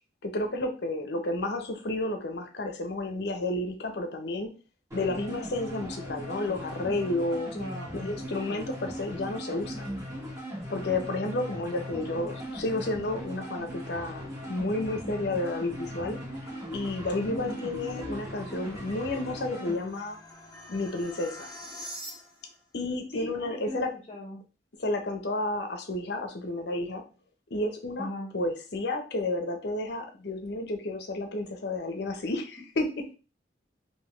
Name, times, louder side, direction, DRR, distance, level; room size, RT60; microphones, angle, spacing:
voice 1, 0.2-4.5 4.9-7.6 7.9-9.9 10.7-16.2 16.7-20.2 20.7-21.5 22.7-23.9 24.8-27.0 27.5-33.1, left 2 dB, 65° left, 5 dB, 0.8 m, -31 dB
sound 1, 4.9-19.8, equal, 15° right, 1.5 m, -39 dB
voice 2, 7.5-7.9 17.1-17.6 17.9-18.2 23.1-23.8 24.1-24.4 28.0-28.3, left 1 dB, 40° left, -3 dB, 0.9 m, -38 dB
sound 2, 17.6-22.6, equal, 20° left, 1.2 m, -46 dB
3.5 x 2.7 x 3.0 m, 0.34 s
head